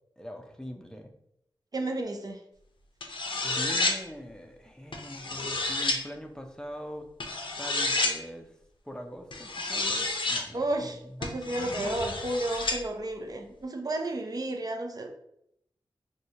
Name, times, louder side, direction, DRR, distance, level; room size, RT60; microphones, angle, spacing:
voice 1, 0.2-1.1 3.4-7.1 7.6-8.5 8.8-11.3, equal, 5° left, 3 dB, 0.5 m, -42 dB
voice 2, 1.7-2.4 10.5-15.1, right 1 dB, 45° right, 4 dB, 0.5 m, -32 dB
sound 1, 3.0-4.0 4.9-6.0 7.2-8.2 9.3-10.5 11.2-12.8, left 2 dB, 60° left, 0.6 m, -30 dB
4.7 x 2.1 x 2.7 m, 0.77 s
cardioid pair, 45°, 9 cm